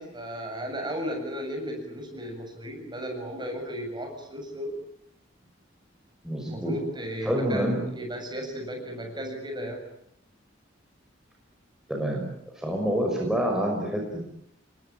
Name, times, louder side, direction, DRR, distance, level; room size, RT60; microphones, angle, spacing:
voice 1, 0.0-4.7 6.4-9.8, equal, 25° right, 3 dB, 7.4 m, -35 dB
voice 2, 6.2-6.7 7.2-7.8 11.9-12.3 12.6-14.3, equal, 5° right, -1 dB, 5.7 m, -27 dB
29.0 x 22.5 x 8.9 m, 0.72 s
head